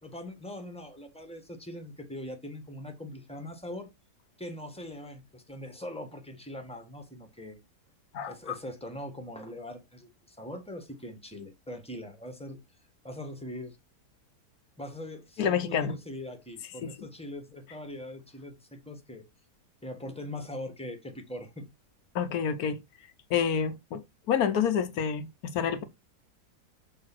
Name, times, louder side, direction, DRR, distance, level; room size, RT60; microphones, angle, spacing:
voice 1, 0.0-3.9 4.4-7.6 8.2-12.6 13.0-13.8 14.8-19.2 19.8-21.7, left 1 dB, 5° left, 1.2 m, -41 dB
voice 2, 8.1-8.6 15.4-15.9 16.8-17.1 22.1-22.8 23.3-25.8, left 7 dB, 65° left, 1.3 m, -28 dB
6.7 x 3.5 x 6.1 m
omnidirectional pair, 1.8 m